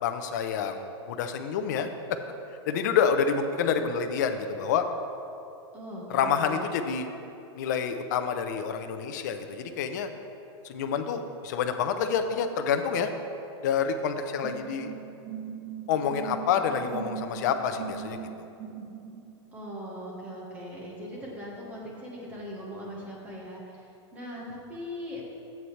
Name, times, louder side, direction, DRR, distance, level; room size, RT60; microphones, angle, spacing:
voice 1, 0.0-1.9 2.7-4.8 6.1-7.1 7.6-10.1 10.6-13.1 13.6-14.9 15.9-18.2, left 7 dB, 40° left, 7 dB, 0.6 m, -28 dB
voice 2, 5.7-6.6 19.5-23.6 24.1-25.3, equal, 10° right, -4 dB, 1.2 m, -40 dB
sound 1, 14.4-19.2, right 8 dB, 50° right, 1.3 m, -39 dB
10.5 x 7.9 x 3.2 m, 2.7 s
supercardioid pair, 175°, 15 cm